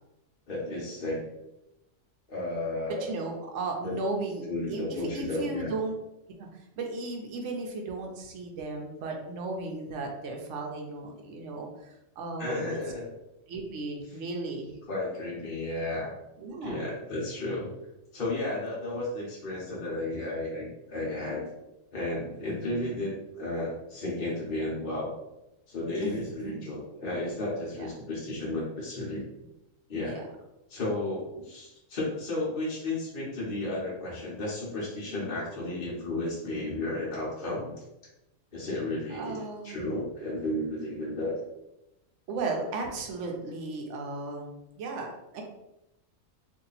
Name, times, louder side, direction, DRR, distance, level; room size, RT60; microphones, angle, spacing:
voice 1, 0.5-1.3 2.3-3.1 3.8-4.0 4.5-5.7 12.4-13.1 14.9-16.1 16.6-17.7 18.1-21.4 21.9-25.1 25.7-29.2 29.9-30.2 30.7-37.7 38.5-41.4, left 2 dB, 45° left, -6 dB, 1.0 m, -33 dB
voice 2, 2.9-5.9 6.4-6.5 6.8-12.8 13.5-14.7 16.4-16.9 22.4-23.1 26.0-26.7 27.7-27.9 30.0-30.2 39.1-39.9 42.3-45.4, right 3 dB, 65° right, 1 dB, 0.9 m, -36 dB
2.8 x 2.6 x 3.9 m, 0.92 s
omnidirectional pair, 1.4 m